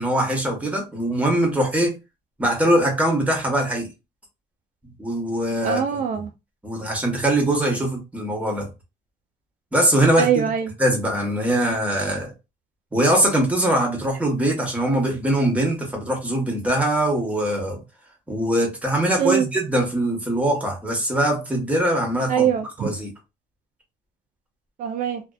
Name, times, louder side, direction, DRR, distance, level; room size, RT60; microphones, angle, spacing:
voice 1, 0.0-2.0 2.4-3.9 5.0-6.0 6.6-8.7 9.7-10.5 10.8-12.3 12.9-17.8 18.3-22.5 22.8-23.1, right 1 dB, 10° right, 1.0 m, -22 dB
voice 2, 5.6-6.3 10.2-10.7 19.2-19.5 22.3-22.9 24.8-25.2, right 8 dB, 55° right, 0.4 m, -22 dB
2.6 x 2.2 x 2.2 m
cardioid pair, 115°, 16 cm